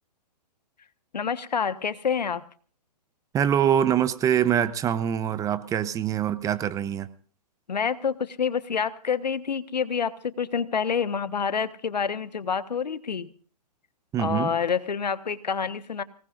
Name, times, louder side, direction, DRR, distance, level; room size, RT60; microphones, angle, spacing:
voice 1, 1.1-2.4 7.7-13.3 14.2-16.0, left 6 dB, 85° left, 13 dB, 1.3 m, -27 dB
voice 2, 3.3-7.1 14.1-14.5, right 9 dB, 15° right, 14 dB, 0.7 m, -24 dB
25.5 x 18.5 x 2.5 m, 0.41 s
hypercardioid pair, 130°, 21 cm